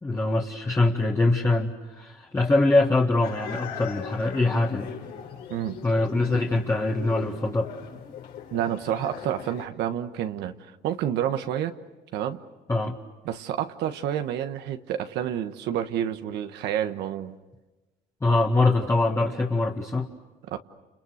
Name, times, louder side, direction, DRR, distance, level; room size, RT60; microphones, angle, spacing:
voice 1, 0.0-4.9 5.8-7.7 12.7-13.0 18.2-20.1, left 2 dB, 15° left, -1 dB, 1.9 m, -23 dB
sound 1, 3.2-9.7, left 7 dB, 75° left, 4.9 m, -39 dB
voice 2, 8.5-10.5 10.8-11.7 12.1-12.4 13.2-17.4 20.5-20.6, right 10 dB, 80° right, 8 dB, 1.4 m, -29 dB
30.0 x 29.0 x 6.5 m, 1.1 s
cardioid pair, 110°, 17 cm